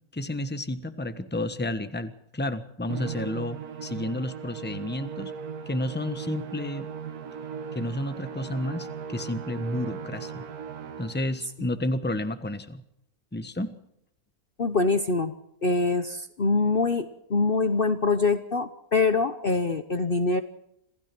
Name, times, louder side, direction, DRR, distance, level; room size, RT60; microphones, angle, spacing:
voice 1, 0.1-5.3 5.7-6.9 7.7-10.4 11.0-12.8 13.3-13.8, left 1 dB, 5° left, 10 dB, 1.2 m, -31 dB
Musical instrument, 2.9-11.4, right 6 dB, 90° right, 1.6 m, -38 dB
voice 2, 14.6-15.3 15.6-20.4, left 3 dB, 40° left, 10 dB, 1.1 m, -24 dB
27.0 x 16.0 x 6.1 m, 0.78 s
omnidirectional pair, 1.5 m